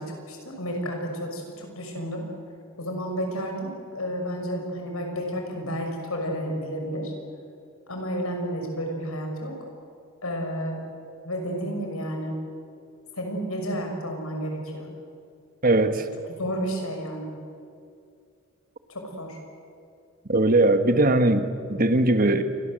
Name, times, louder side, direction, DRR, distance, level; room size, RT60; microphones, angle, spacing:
voice 1, 0.0-2.2 2.8-7.1 7.9-9.5 10.2-10.8 11.2-12.3 13.1-14.9 16.4-17.3 18.9-19.4, equal, 80° left, 3 dB, 6.1 m, -31 dB
voice 2, 15.6-16.1 20.3-22.4, right 2 dB, 40° right, 9 dB, 1.5 m, -20 dB
27.5 x 23.5 x 7.7 m, 2.4 s
head